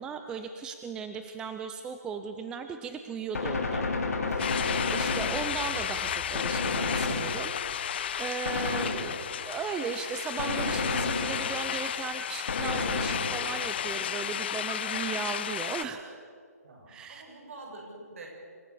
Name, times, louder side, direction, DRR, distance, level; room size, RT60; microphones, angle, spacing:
voice 1, 0.0-3.9 4.3-16.0 16.9-17.2, right 6 dB, 10° right, 7 dB, 0.5 m, -37 dB
Gunshot gunfire, 3.3-5.8 6.3-7.8 8.4-9.5 10.4-11.8 12.5-13.7, left 3 dB, 65° left, 3.7 m, -31 dB
sound 1, 4.4-15.8, left 9 dB, 40° left, 0.4 m, -33 dB
sound 2, 5.0-10.3 11.9-12.4 15.0-15.1, right 2 dB, 25° right, 7.3 m, -49 dB
voice 2, 16.6-18.3, right 2 dB, 55° right, 0 dB, 6.9 m, -46 dB
26.0 x 14.0 x 7.0 m, 2.2 s
hypercardioid pair, 155°, 9 cm